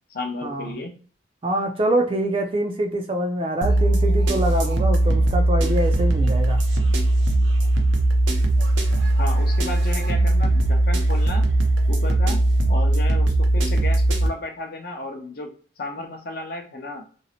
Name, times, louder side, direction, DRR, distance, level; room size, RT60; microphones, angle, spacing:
voice 1, 0.1-1.0 9.2-11.5 11.9-12.4 12.7-17.1, left 2 dB, 50° left, 3 dB, 0.6 m, -33 dB
voice 2, 1.4-6.6, right 1 dB, 30° right, 4 dB, 0.4 m, -25 dB
sound 1, 3.6-14.3, right 1 dB, 90° right, 0.6 m, -19 dB
2.5 x 2.0 x 2.8 m, 0.40 s
head